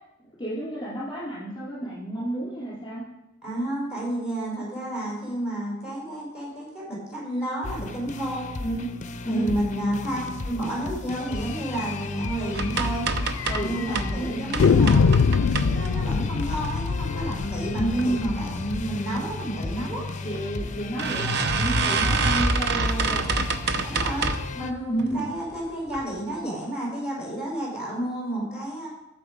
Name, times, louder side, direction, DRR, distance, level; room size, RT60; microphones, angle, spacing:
voice 1, 0.4-3.0 8.6-8.9 9.2-9.6 13.5-14.6 17.7-18.4 20.2-23.5 24.9-25.2, right 1 dB, 25° left, -9 dB, 4.0 m, -30 dB
voice 2, 3.4-8.5 9.3-13.1 13.6-15.3 15.6-20.0 23.8-28.9, right 1 dB, 5° right, -4 dB, 4.8 m, -31 dB
sound 1, 7.6-24.7, left 3 dB, 40° left, 0.6 m, -35 dB
sound 2, 11.8-11.9 12.2-12.3 12.6-12.7 13.4-13.9 14.6-19.4, left 5 dB, 90° left, 0.4 m, -23 dB
sound 3, 12.5-14.2 14.5-16.1 16.6-17.2 17.7-18.1 18.3-18.4 18.7-18.8 19.9-20.0 20.4-20.5 21.0-24.6 25.0-25.4 25.9-26.0 26.4-26.5, right 3 dB, 60° right, 0.8 m, -27 dB
13.5 x 7.5 x 5.1 m, 0.92 s
head